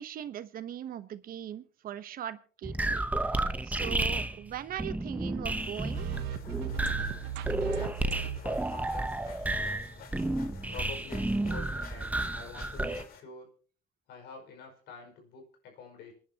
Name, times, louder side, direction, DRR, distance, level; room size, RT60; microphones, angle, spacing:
voice 1, 0.0-3.1 3.6-6.1, right 10 dB, 60° right, 13 dB, 1.0 m, -40 dB
sound 1, 2.6-13.0, right 2 dB, 10° right, 0.9 m, -32 dB
sound 2, 5.6-13.2, left 7 dB, 60° left, 2.2 m, -51 dB
sound 3, 5.9-8.6, right 10 dB, 85° right, 0.9 m, -36 dB
voice 2, 7.6-9.9 10.7-13.5 14.1-16.1, left 4 dB, 80° left, 3 dB, 5.3 m, -48 dB
27.5 x 10.0 x 2.9 m, 0.41 s
cardioid pair, 110°, 17 cm